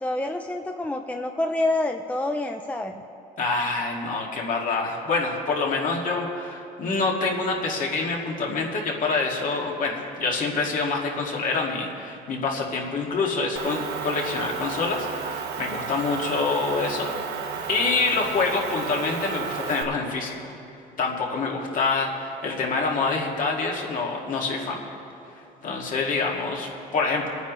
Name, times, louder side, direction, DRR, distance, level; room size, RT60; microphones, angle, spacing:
voice 1, 0.0-3.0, left 2 dB, 10° left, 5 dB, 0.5 m, -27 dB
voice 2, 3.4-17.1 17.7-20.5 21.0-24.8 25.6-27.4, left 4 dB, 50° left, -1 dB, 2.2 m, -26 dB
Motor vehicle (road) / Engine, 13.6-19.8, right 6 dB, 80° right, 1.1 m, -32 dB
27.0 x 9.3 x 3.1 m, 2.7 s
cardioid pair, 110°, 17 cm